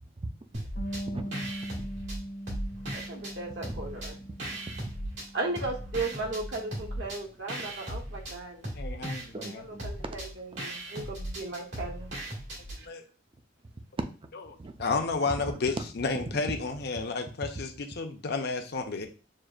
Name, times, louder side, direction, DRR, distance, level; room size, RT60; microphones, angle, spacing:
sound 1, 0.5-1.0 1.3-3.3 3.6-5.3 5.6-12.8, right 1 dB, 85° right, 1.9 m, -37 dB
Bass guitar, 0.8-7.0, equal, 80° left, 1.3 m, -41 dB
voice 1, 0.9-1.5 3.2-3.3 3.6-3.8 4.2-4.8 7.6-7.8 9.3-10.1 14.6-14.8 15.4-15.6 16.1-16.2, right 2 dB, 30° right, 7 dB, 0.5 m, -41 dB
voice 2, 2.9-4.2 5.3-8.6 9.5-12.1, right 2 dB, 65° right, 1 dB, 1.0 m, -36 dB
voice 3, 8.8-9.6 12.9-13.0 14.8-19.1, left 4 dB, 60° left, 5 dB, 0.7 m, -31 dB
6.4 x 2.5 x 2.4 m, 0.35 s
head